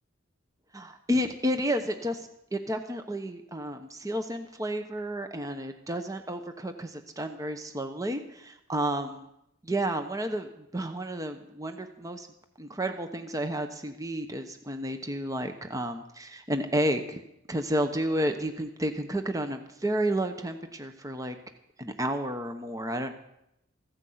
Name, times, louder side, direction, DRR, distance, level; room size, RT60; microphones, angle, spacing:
voice 1, 0.7-9.3 9.6-12.3 12.6-17.2 17.5-21.4 21.8-23.1, right 1 dB, 15° right, 7 dB, 0.9 m, -31 dB
15.0 x 9.7 x 7.9 m, 0.82 s
head